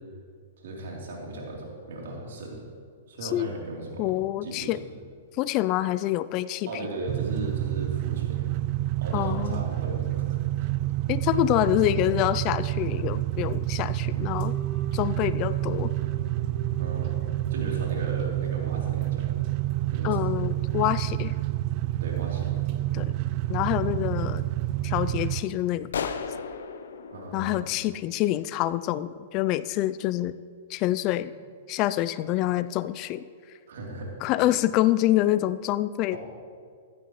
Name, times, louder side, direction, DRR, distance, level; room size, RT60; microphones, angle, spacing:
voice 1, 0.6-2.6 3.1-5.0 6.7-8.4 9.0-10.4 16.8-17.2 17.5-19.3 19.9-20.2 22.0-22.6 27.1-27.6 33.7-34.2 36.1-36.2, right 1 dB, 70° right, -2 dB, 3.3 m, -37 dB
voice 2, 4.0-4.8 5.4-6.7 9.1-9.6 11.1-14.5 14.9-15.9 20.0-21.3 22.9-23.1 23.5-24.5 24.8-26.1 27.3-30.4 30.7-31.3 31.7-33.3 34.2-36.2, left 15 dB, 40° left, 15 dB, 0.4 m, -26 dB
sound 1, 7.1-25.4, right 15 dB, 45° right, 0.5 m, -28 dB
sound 2, 14.1-20.9, right 3 dB, 20° left, 1.3 m, -45 dB
sound 3, 25.9-28.5, left 6 dB, 80° left, 0.8 m, -36 dB
15.5 x 12.0 x 3.1 m, 2.1 s
hypercardioid pair, 125°, 0 cm